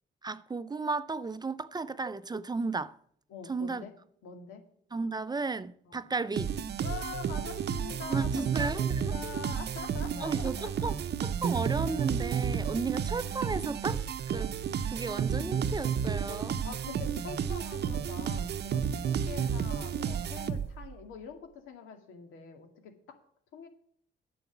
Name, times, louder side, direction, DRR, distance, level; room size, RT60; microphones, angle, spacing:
voice 1, 0.2-2.9 3.5-3.8 4.9-6.5 8.1-9.2 10.2-11.0 11.2-14.6 14.9-16.6, right 4 dB, 20° right, 0.5 m, -34 dB
voice 2, 3.3-3.9 4.2-4.6 5.9-6.1 6.8-10.9 16.3-23.2 23.5-23.7, left 7 dB, 90° left, 2.1 m, -44 dB
sound 1, 6.4-20.9, right 7 dB, 55° right, 0.7 m, -32 dB
9.7 x 7.1 x 7.2 m
cardioid pair, 90°, 20 cm